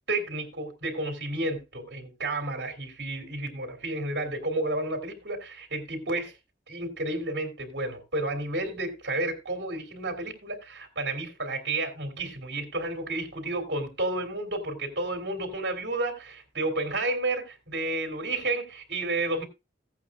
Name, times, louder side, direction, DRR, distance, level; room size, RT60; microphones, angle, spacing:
voice 1, 0.1-6.4 6.7-19.5, right 2 dB, 65° right, 2.9 m, -31 dB
16.0 x 8.4 x 2.4 m
head